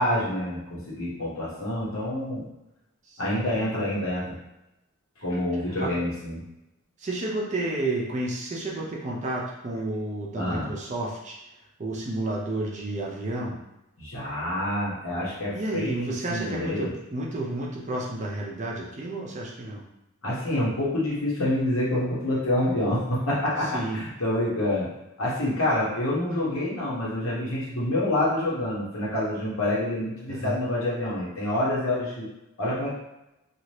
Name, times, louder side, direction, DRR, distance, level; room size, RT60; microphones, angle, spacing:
voice 1, 0.0-2.4 3.2-4.3 5.2-6.4 10.4-10.7 14.0-16.9 20.2-24.9 25.2-32.3 32.6-32.9, left 1 dB, 70° left, -6 dB, 1.1 m, -27 dB
voice 2, 3.1-3.6 5.8-6.0 7.0-11.4 11.8-13.6 15.5-19.8 23.7-24.0 30.3-30.6, right 2 dB, 35° right, -2 dB, 0.5 m, -31 dB
2.7 x 2.4 x 3.2 m, 0.93 s
head